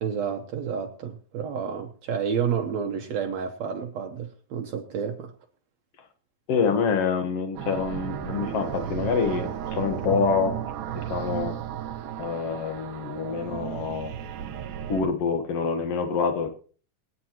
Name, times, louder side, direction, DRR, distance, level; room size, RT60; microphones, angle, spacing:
voice 1, 0.0-5.3, right 7 dB, 70° right, 4 dB, 2.0 m, -30 dB
voice 2, 6.5-10.6 10.9-11.6 12.2-14.1 14.9-16.5, left 5 dB, 55° left, 6 dB, 2.2 m, -26 dB
sound 1, 7.6-15.0, right 10 dB, 90° right, 2.5 m, -34 dB
23.0 x 9.6 x 3.0 m, 0.41 s
omnidirectional pair, 3.6 m